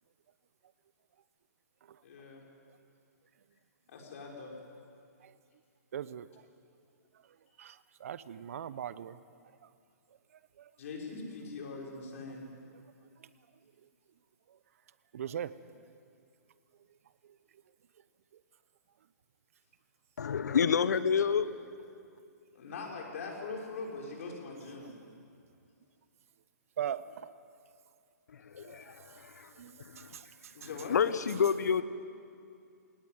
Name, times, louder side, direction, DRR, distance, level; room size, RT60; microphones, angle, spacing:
voice 1, 2.0-2.4 3.9-4.5 10.8-12.5 22.5-24.9 30.5-31.0, left 4 dB, 55° left, 0 dB, 6.0 m, -42 dB
voice 2, 5.9-6.3 7.6-9.2 9.6-9.7 10.6-10.7 13.2-13.3 15.1-15.5 24.8-24.9 26.8-27.3 28.6-28.8 29.6-30.5, right 9 dB, 55° right, 15 dB, 0.9 m, -40 dB
voice 3, 20.2-21.5 28.5-28.9 30.0-30.1 30.9-31.8, left 6 dB, 75° left, 13 dB, 1.2 m, -28 dB
21.5 x 19.0 x 9.5 m, 2.4 s
hypercardioid pair, 155°, 9 cm